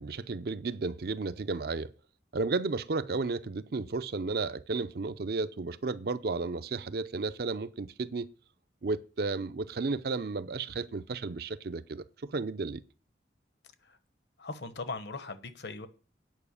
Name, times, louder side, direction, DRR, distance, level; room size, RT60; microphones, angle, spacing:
voice 1, 0.0-1.9 2.3-8.3 8.8-12.8, right 3 dB, 55° right, 0.5 m, -33 dB
voice 2, 14.4-15.9, left 3 dB, 70° left, 1.1 m, -39 dB
9.2 x 5.7 x 8.3 m
head